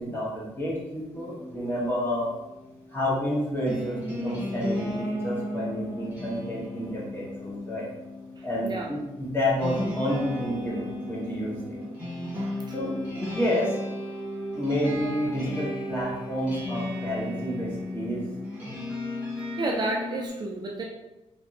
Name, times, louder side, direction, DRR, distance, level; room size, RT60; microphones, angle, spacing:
voice 1, 0.0-2.3 2.9-7.9 8.4-11.8 12.7-13.7 14.5-18.2, equal, 20° left, -6 dB, 1.0 m, -29 dB
sound 1, 1.1-20.3, left 1 dB, 10° right, 1.1 m, -35 dB
voice 2, 8.4-8.9 12.3-13.0 19.5-20.8, right 2 dB, 40° right, -1 dB, 0.3 m, -32 dB
3.0 x 2.6 x 2.6 m, 0.98 s
wide cardioid pair, 155°, 12 cm